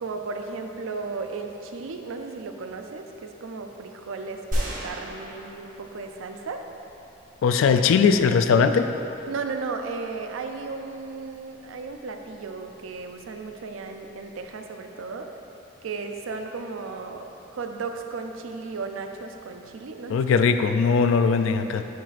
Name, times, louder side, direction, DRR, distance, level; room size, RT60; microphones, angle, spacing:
voice 1, 0.0-6.7 9.3-15.3 15.8-20.2, right 4 dB, 80° right, 5 dB, 0.4 m, -35 dB
sound 1, 4.5-6.3 6.8-6.9, equal, 40° right, 1.1 m, -31 dB
voice 2, 7.4-8.9 20.1-21.8, left 5 dB, 75° left, 8 dB, 0.3 m, -20 dB
10.0 x 4.0 x 2.5 m, 3.0 s
head